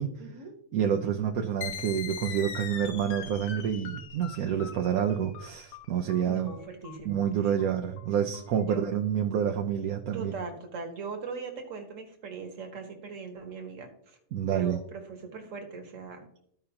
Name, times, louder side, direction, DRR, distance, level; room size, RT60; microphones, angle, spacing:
voice 1, 0.2-0.5 6.3-7.5 8.7-8.9 10.1-14.2 14.5-16.2, right 4 dB, 55° right, 4 dB, 1.7 m, -40 dB
voice 2, 0.7-6.5 7.0-10.3 14.3-14.8, right 9 dB, 75° right, 3 dB, 1.2 m, -28 dB
sound 1, 1.6-8.8, left 8 dB, 80° left, 1.2 m, -42 dB
14.5 x 4.9 x 2.9 m, 0.69 s
omnidirectional pair, 1.6 m